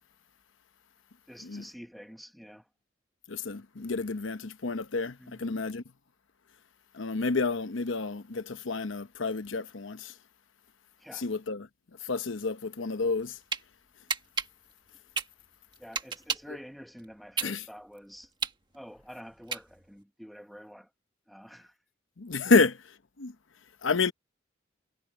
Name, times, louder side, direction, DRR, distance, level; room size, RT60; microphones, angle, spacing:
voice 1, 1.3-2.6 5.2-5.6 11.0-11.3 15.8-18.3 18.7-20.9 21.3-21.7, equal, ahead, 1.2 m, -48 dB
voice 2, 3.3-5.8 6.9-10.1 11.1-11.7 12.0-13.4 17.4-17.6 22.2-22.8 23.2-23.3 23.8-24.1, left 4 dB, 85° left, 0.9 m, -29 dB
sound 1, 13.1-13.6 14.1-16.6 17.0-20.0, right 5 dB, 25° right, 1.4 m, -33 dB
head